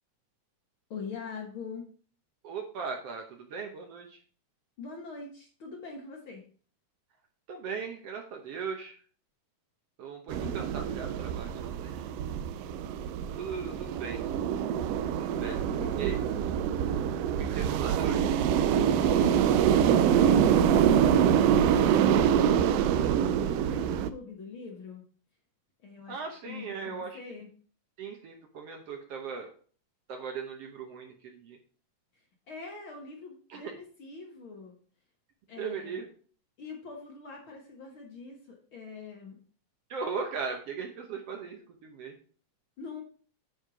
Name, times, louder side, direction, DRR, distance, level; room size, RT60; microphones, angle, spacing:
voice 1, 0.9-1.9 4.8-6.5 10.4-10.7 15.4-16.0 19.0-21.1 21.5-25.0 25.8-27.5 32.1-34.8 35.5-36.0 36.6-39.4 42.8-43.0, left 4 dB, 50° left, 1 dB, 1.8 m, -44 dB
voice 2, 2.4-4.2 7.5-8.9 10.0-12.0 13.4-14.2 15.2-15.6 16.0-16.2 17.5-18.4 26.1-27.2 28.0-29.5 30.1-31.6 33.5-33.7 35.6-36.1 39.9-42.1, right 5 dB, 65° right, 3 dB, 1.7 m, -38 dB
sound 1, 10.3-24.1, right 8 dB, 85° right, 1.4 m, -25 dB
9.2 x 4.4 x 5.0 m, 0.43 s
omnidirectional pair, 3.4 m